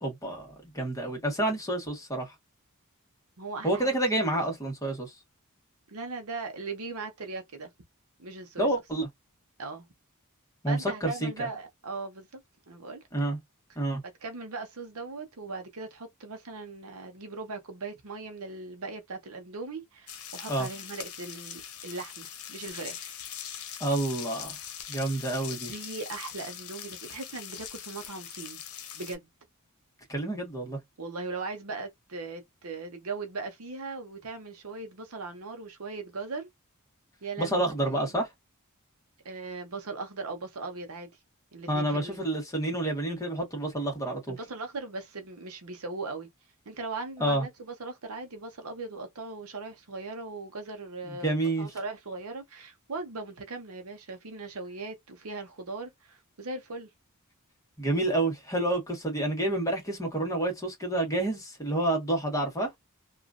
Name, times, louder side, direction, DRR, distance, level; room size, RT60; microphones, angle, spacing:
voice 1, 0.0-2.3 3.6-5.1 8.6-9.1 10.6-11.3 13.1-13.4 13.7-14.0 20.5-20.7 23.8-24.6 24.9-25.7 30.1-30.8 37.4-38.3 41.7-44.4 47.2-47.4 51.1-51.7 57.8-62.7, right 1 dB, 15° left, 1.3 m, -29 dB
voice 2, 3.4-4.4 5.9-7.7 8.2-8.7 9.6-9.9 10.7-12.4 12.7-13.0 14.2-23.1 25.7-28.6 28.9-29.3 31.0-36.5 37.2-38.1 39.2-41.1 41.5-42.2 44.3-46.3 46.7-56.9, right 3 dB, 75° right, 0.8 m, -39 dB
sound 1, 20.1-29.2, left 9 dB, 85° left, 0.8 m, -42 dB
2.8 x 2.5 x 2.4 m
head